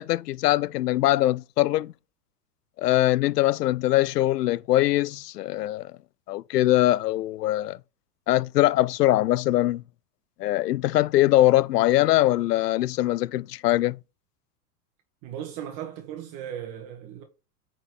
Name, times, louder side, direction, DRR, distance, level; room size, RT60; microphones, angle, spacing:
voice 1, 0.0-1.9 2.8-5.9 6.3-7.8 8.3-9.8 10.4-14.0, left 15 dB, 80° left, 0.5 m, -22 dB
voice 2, 15.2-17.2, right 10 dB, 45° right, 1.7 m, -37 dB
9.0 x 4.5 x 4.8 m
hypercardioid pair, 105°, 47 cm